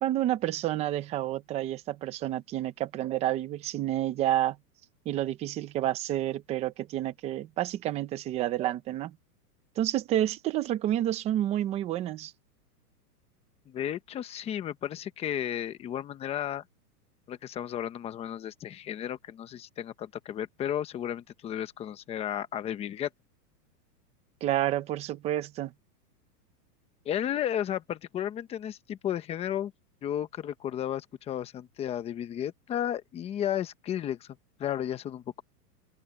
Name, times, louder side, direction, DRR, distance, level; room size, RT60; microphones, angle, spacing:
voice 1, 0.0-4.6 5.1-9.2 9.8-12.3 24.4-25.7, right 13 dB, 15° right, 0.6 m, -29 dB
voice 2, 13.7-16.6 17.3-23.1 27.0-29.7 30.0-35.4, left 10 dB, 15° left, 0.9 m, -33 dB
open air
supercardioid pair, 160°, 48 cm